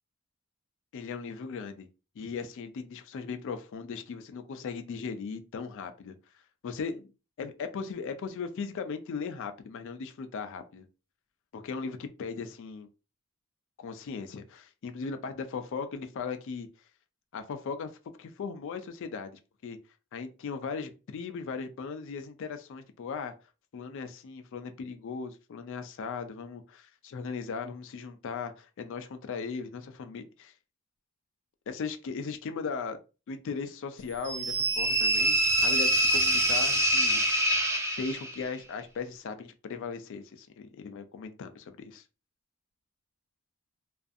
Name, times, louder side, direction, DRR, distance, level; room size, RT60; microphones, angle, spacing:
voice 1, 0.9-1.9 2.2-6.2 6.6-7.1 7.4-10.9 11.5-12.9 13.8-16.7 17.3-17.9 18.2-19.8 20.1-23.3 23.7-30.5 31.7-33.0 33.3-37.2 38.0-42.0, left 5 dB, 60° left, 0.4 m, -38 dB
sound 1, 34.3-38.4, right 1 dB, 15° right, 0.4 m, -25 dB
2.5 x 2.3 x 2.5 m
head